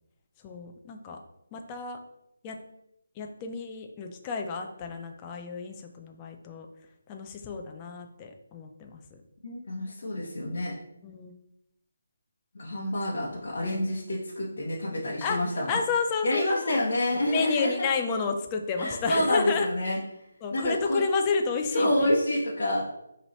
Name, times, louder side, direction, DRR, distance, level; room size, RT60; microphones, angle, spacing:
voice 1, 0.4-1.2 1.5-2.0 2.4-2.6 3.2-6.7 7.1-9.0 11.0-11.3 12.8-12.9 15.2-15.4 15.7-16.8 17.1-19.7 20.4-22.1, left 4 dB, 15° left, 3 dB, 0.4 m, -31 dB
voice 2, 9.4-10.7 12.5-15.8 16.2-17.7 18.8-20.0 20.5-21.0 21.7-22.8, left 1 dB, 50° left, -4 dB, 0.9 m, -28 dB
5.3 x 3.0 x 3.1 m, 0.83 s
hypercardioid pair, 170°, 0 cm